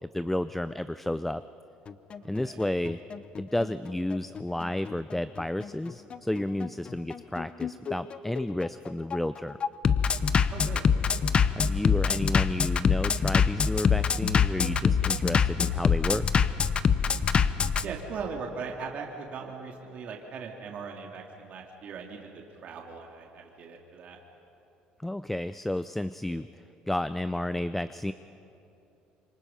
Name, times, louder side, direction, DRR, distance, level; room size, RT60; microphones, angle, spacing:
voice 1, 0.1-1.4 2.2-3.0 3.4-9.6 11.5-16.3 25.0-28.1, left 1 dB, 5° left, 13 dB, 0.4 m, -31 dB
Bass drum, 1.9-17.8, left 6 dB, 35° left, 0.8 m, -25 dB
voice 2, 2.2-2.6 10.5-10.9 17.8-24.2, right 5 dB, 55° right, 1 dB, 2.3 m, -39 dB
26.5 x 24.0 x 5.6 m, 3.0 s
cardioid pair, 110°, 3 cm